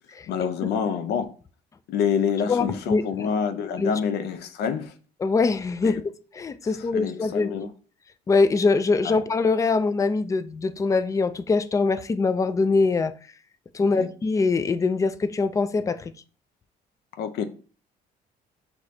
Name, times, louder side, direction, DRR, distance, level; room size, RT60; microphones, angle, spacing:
voice 1, 0.3-1.3 1.9-4.9 5.8-6.0 6.9-7.7 9.0-9.2 14.0-14.1 17.2-17.5, left 7 dB, 75° left, 0.6 m, -27 dB
voice 2, 2.5-3.0 3.8-3.9 5.2-6.0 6.3-7.7 8.3-13.1 13.7-16.1, left 4 dB, 20° left, 0.4 m, -23 dB
6.2 x 2.9 x 2.7 m
cardioid pair, 110°, 17 cm